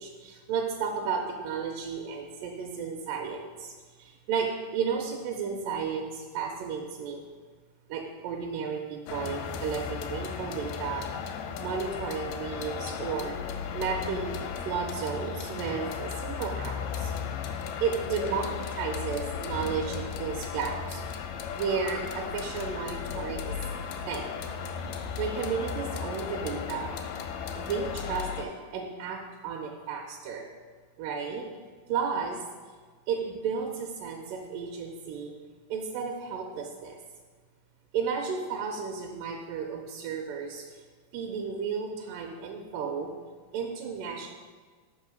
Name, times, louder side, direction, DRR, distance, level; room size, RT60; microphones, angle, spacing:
voice 1, 0.0-3.7 4.0-7.3 7.9-11.1 11.6-13.4 13.7-14.4 14.7-17.1 17.8-21.0 21.6-23.6 24.1-24.4 25.2-26.9 27.5-30.5 31.0-31.5 31.9-32.4 33.1-35.3 35.7-36.9 37.9-40.6 41.1-43.1 43.5-44.3, right 6 dB, 80° right, 1 dB, 2.0 m, -33 dB
sound 1, 9.1-28.5, left 7 dB, 85° left, 2.4 m, -35 dB
6.1 x 5.5 x 5.1 m, 1.5 s
omnidirectional pair, 4.3 m